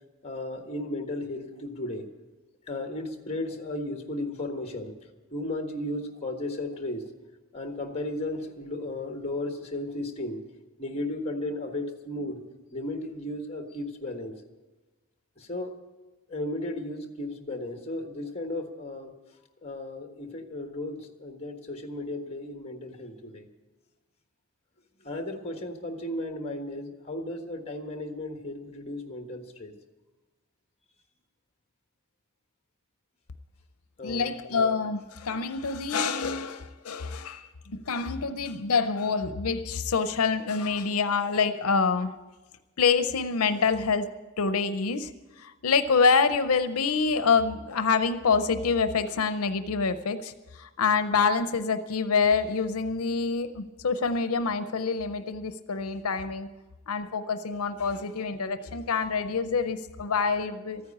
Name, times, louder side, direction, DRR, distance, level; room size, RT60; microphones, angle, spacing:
voice 1, 0.2-2.1 2.7-4.9 5.3-7.0 7.5-10.4 10.8-12.4 12.7-14.4 15.4-15.8 16.3-19.1 19.6-23.5 25.0-29.7 34.0-34.3, left 1 dB, 30° left, 5 dB, 1.4 m, -35 dB
voice 2, 34.0-42.2 42.8-45.1 45.4-56.5 56.9-60.8, left 5 dB, 85° left, 10 dB, 0.6 m, -26 dB
14.0 x 9.5 x 8.5 m, 1.2 s
head